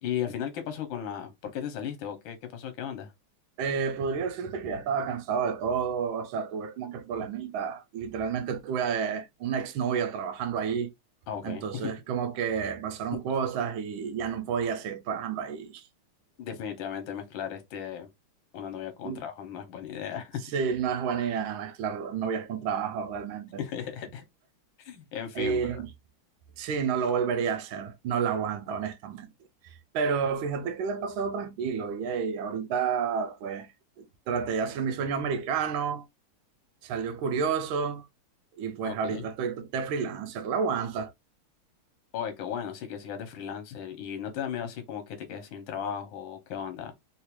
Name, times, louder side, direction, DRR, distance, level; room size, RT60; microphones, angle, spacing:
voice 1, 0.0-3.1 11.3-11.9 16.4-18.1 18.5-20.4 23.6-24.2 24.8-25.8 38.8-39.2 42.1-46.9, left 8 dB, 70° left, 1.5 m, -36 dB
voice 2, 3.6-10.9 11.4-15.8 19.0-19.2 20.5-23.6 25.3-25.9 26.6-29.3 29.6-33.7 34.0-36.0 36.8-38.1 38.6-41.1, right 6 dB, 75° right, 1.4 m, -30 dB
3.6 x 2.4 x 2.9 m
omnidirectional pair, 2.4 m